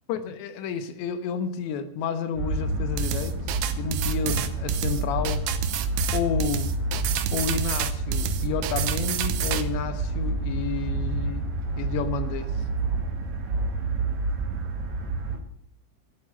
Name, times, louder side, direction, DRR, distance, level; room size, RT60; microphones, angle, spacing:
voice 1, 0.1-3.4 3.8-5.5 6.1-6.7 7.3-11.5 11.8-12.5, left 6 dB, 80° left, 3.4 m, -30 dB
sound 1, 2.3-15.4, right 3 dB, 50° right, 2.8 m, -28 dB
sound 2, 3.0-9.6, right 9 dB, 75° right, 2.8 m, -30 dB
13.0 x 8.5 x 8.1 m
omnidirectional pair, 5.2 m